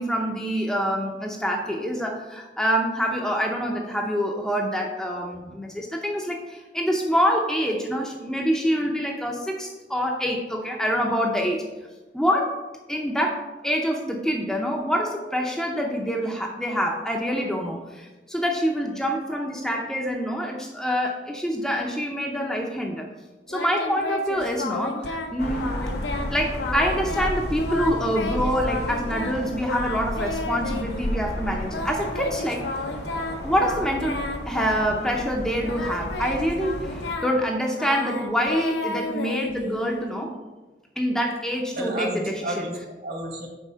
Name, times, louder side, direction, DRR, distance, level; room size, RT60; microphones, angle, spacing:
voice 1, 0.0-11.6 12.1-12.5 12.9-23.1 23.5-25.7 26.3-32.6 33.4-34.1 34.5-40.3 41.0-42.5, equal, 5° left, 0 dB, 0.5 m, -26 dB
Singing, 23.5-25.3 25.6-26.3 26.6-27.3 27.6-29.4 29.6-31.1 31.7-35.3 35.6-40.0, left 2 dB, 85° left, 0.8 m, -32 dB
sound 1, 25.4-37.1, equal, 70° left, 1.2 m, -33 dB
voice 2, 41.7-43.5, right 1 dB, 60° right, 1 dB, 1.6 m, -31 dB
5.5 x 4.2 x 6.2 m, 1.2 s
head